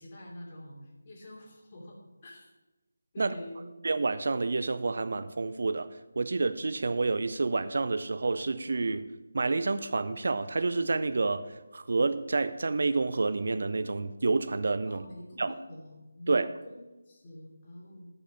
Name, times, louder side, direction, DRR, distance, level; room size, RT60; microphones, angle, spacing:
voice 1, 0.0-2.0 2.2-2.5 3.1-3.7 14.9-18.1, left 1 dB, 30° left, -3 dB, 2.8 m, -46 dB
voice 2, 3.8-5.9 6.2-9.1 9.3-11.5 11.7-15.0 15.4-15.5 16.3-16.5, right 3 dB, 50° right, 13 dB, 0.5 m, -29 dB
11.5 x 5.6 x 8.7 m, 1.1 s
figure-of-eight pair, 155°, 0 cm